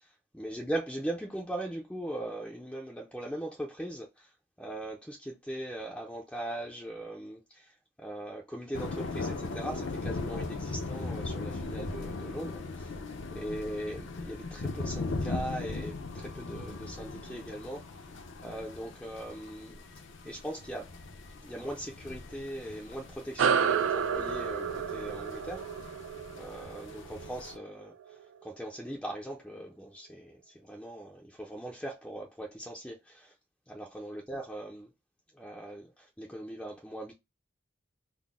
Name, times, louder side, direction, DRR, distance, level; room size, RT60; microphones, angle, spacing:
voice 1, 0.3-19.8 20.2-20.9 21.4-26.0 26.4-33.3 33.7-34.9 35.3-37.1, right 1 dB, 5° left, 0.4 m, -40 dB
sound 1, 8.7-27.6, left 3 dB, 75° left, 0.6 m, -39 dB
sound 2, 23.4-28.2, right 7 dB, 80° right, 0.3 m, -31 dB
3.8 x 2.0 x 3.5 m
head